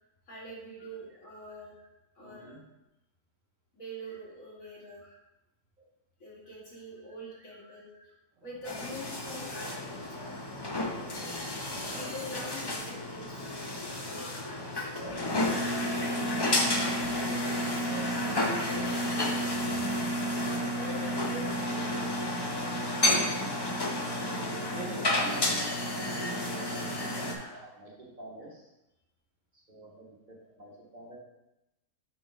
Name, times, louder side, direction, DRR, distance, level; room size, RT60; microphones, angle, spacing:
voice 1, 0.2-1.7 2.1-2.6 3.7-5.1 6.2-7.9 8.4-10.4 10.8-11.4 11.9-14.9 15.4-15.7 17.0-20.0 20.4-22.1 23.8-24.9 27.2-27.5, equal, 75° left, -6 dB, 2.3 m, -45 dB
voice 2, 2.2-2.6 4.1-4.2 4.6-5.0 7.3-8.1 11.0-11.5 15.0-15.1 23.1-23.5 24.7-28.7 29.5-31.2, right 1 dB, 35° right, -3 dB, 1.5 m, -47 dB
sound 1, 8.4-17.5, right 2 dB, 70° right, 1.2 m, -51 dB
sound 2, 8.6-27.3, left 1 dB, 30° left, 0.5 m, -31 dB
5.6 x 3.8 x 5.0 m, 0.92 s
omnidirectional pair, 1.4 m